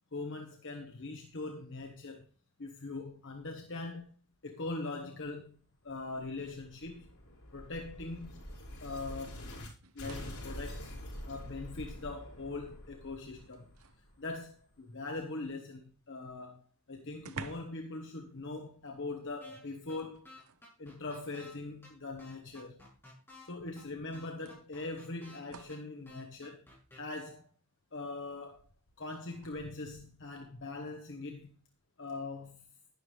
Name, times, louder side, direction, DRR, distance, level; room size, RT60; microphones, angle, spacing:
voice 1, 0.1-2.3 2.6-4.1 4.4-7.1 7.5-8.4 8.8-9.5 9.9-10.9 11.3-13.7 14.2-16.6 16.9-20.3 20.8-22.8 23.4-26.6 26.9-27.5 27.9-28.6 29.0-31.6 32.0-32.7, left 3 dB, 60° left, 1.3 m, -41 dB
sound 1, 6.3-9.7 10.0-14.7, left 1 dB, 85° left, 5.1 m, -46 dB
sound 2, 9.8-10.6 11.9-12.0 12.5-14.1 16.2-16.3 16.5-16.6 17.2-17.9 18.2-18.4 19.9-20.7 21.8-21.9 23.5-23.6 24.4-25.9 29.3-29.5, right 5 dB, 75° right, 0.8 m, -50 dB
sound 3, 19.4-19.6 19.9-20.0 20.3-21.5 21.8-21.9 22.2-23.5 23.8-23.9 24.1-25.4 25.7-25.8 26.1-27.0, left 2 dB, 10° left, 7.3 m, -53 dB
11.5 x 11.0 x 3.3 m
head